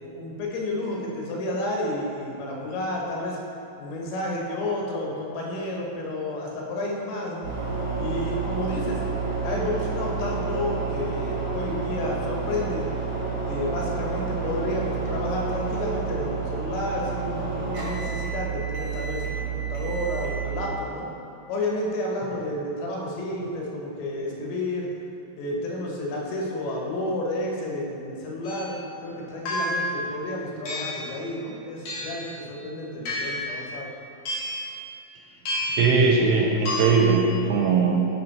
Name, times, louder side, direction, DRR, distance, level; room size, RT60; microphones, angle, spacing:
voice 1, 0.0-3.4 3.8-7.5 8.0-9.0 9.4-12.8 13.4-21.1 21.5-24.9 25.4-28.8 29.0-33.9, left 1 dB, 80° left, -1 dB, 3.3 m, -31 dB
sound 1, 7.4-20.6, right 4 dB, 55° right, 1.6 m, -29 dB
sound 2, 28.4-28.7 29.4-30.0 30.6-31.1 31.8-32.3 33.0-33.5 34.2-34.6 35.4-35.9 36.6-36.8, left 1 dB, 60° left, 2.4 m, -29 dB
voice 2, 35.7-38.1, right 4 dB, 80° right, 1 dB, 2.5 m, -20 dB
10.5 x 5.1 x 4.1 m, 2.8 s
omnidirectional pair, 5.1 m